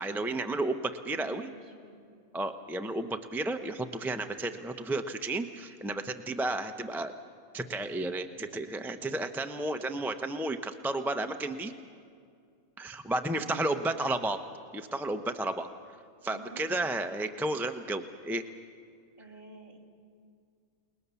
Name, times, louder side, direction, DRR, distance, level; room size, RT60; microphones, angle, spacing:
voice 1, 0.0-1.5 2.3-7.1 7.5-11.7 12.8-14.4 14.7-15.7 16.2-18.4, right 2 dB, ahead, 7 dB, 0.4 m, -32 dB
voice 2, 0.8-2.0 13.3-14.0 16.2-17.1 19.2-19.8, right 3 dB, 40° right, -3 dB, 3.1 m, -50 dB
30.0 x 19.5 x 7.0 m, 2.3 s
omnidirectional pair, 1.4 m